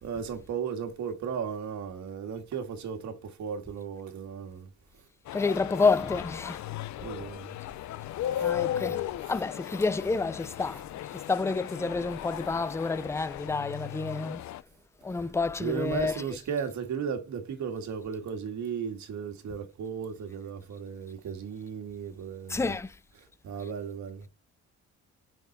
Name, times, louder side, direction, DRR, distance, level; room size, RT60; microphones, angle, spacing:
voice 1, 0.0-4.7 7.0-7.5 8.8-9.0 15.6-22.8 23.4-24.3, right 7 dB, 70° right, 2.2 m, -35 dB
sound 1, 5.3-14.6, left 12 dB, 65° left, 0.6 m, -36 dB
voice 2, 5.3-6.7 7.0-7.1 8.4-9.0 9.3-10.8 11.1-14.4 15.0-16.4 22.5-22.9, left 4 dB, 10° left, 0.5 m, -29 dB
7.4 x 6.2 x 4.3 m
cardioid pair, 90°, 30 cm